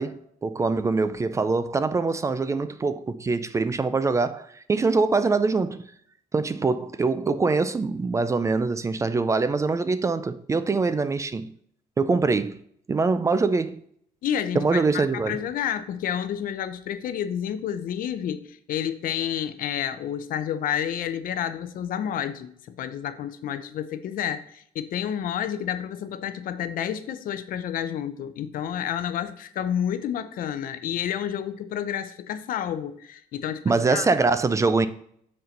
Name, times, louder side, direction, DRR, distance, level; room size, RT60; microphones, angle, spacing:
voice 1, 0.0-5.9 6.3-11.5 12.0-12.6 12.9-13.8 14.5-15.4 33.7-34.9, right 4 dB, 20° right, 0.4 m, -24 dB
voice 2, 14.2-34.1, left 9 dB, 75° left, 0.6 m, -30 dB
6.7 x 4.3 x 5.2 m
cardioid pair, 160°, 15 cm